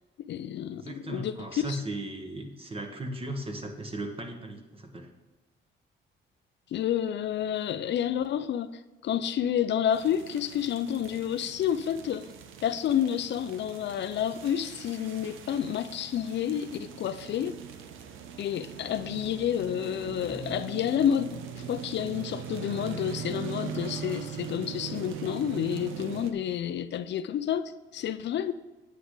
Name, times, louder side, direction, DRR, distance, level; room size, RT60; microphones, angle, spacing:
voice 1, 0.2-1.8 6.7-12.3 12.6-17.6 18.4-28.5, left 9 dB, 65° left, 0.5 m, -30 dB
voice 2, 0.7-5.1, right 1 dB, 30° right, 1.6 m, -37 dB
sound 1, 9.9-26.3, right 8 dB, 85° right, 0.8 m, -41 dB
9.4 x 8.2 x 3.9 m
cardioid pair, 90°, 20 cm